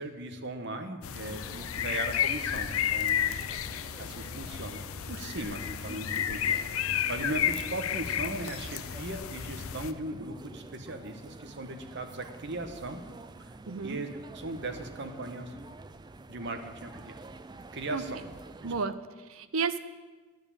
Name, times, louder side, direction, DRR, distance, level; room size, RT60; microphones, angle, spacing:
voice 1, 0.0-3.5 4.0-4.8 5.1-6.6 7.1-13.0 13.8-14.1 14.3-15.5 16.3-17.2 17.7-18.2 18.6-18.7, right 2 dB, 55° right, 6 dB, 1.1 m, -38 dB
sound 1, 1.0-9.9, left 9 dB, 80° left, 0.5 m, -32 dB
sound 2, 1.2-18.9, right 2 dB, 20° right, 0.3 m, -49 dB
voice 2, 13.7-14.0 17.9-18.3 18.6-19.8, right 5 dB, 80° right, 12 dB, 0.7 m, -33 dB
11.0 x 7.1 x 8.7 m, 1.3 s
head